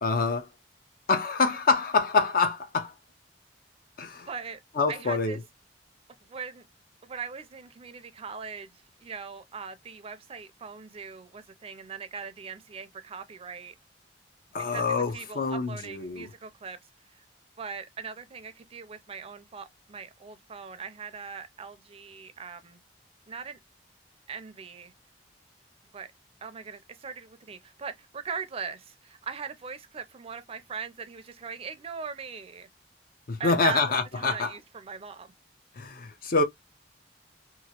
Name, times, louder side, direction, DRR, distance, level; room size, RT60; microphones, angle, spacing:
voice 1, 0.0-0.5 1.1-2.9 4.0-4.3 4.8-5.4 14.5-16.3 33.3-34.5 35.8-36.4, left 4 dB, 55° left, 0.6 m, -26 dB
voice 2, 4.3-4.6 4.9-5.4 6.2-6.6 7.0-13.7 14.6-16.8 17.1-17.2 17.6-22.8 23.3-23.6 24.3-24.9 25.9-26.1 26.4-32.7 33.4-33.8 34.1-35.3, right 6 dB, 35° right, 0.4 m, -40 dB
2.9 x 2.4 x 2.8 m
head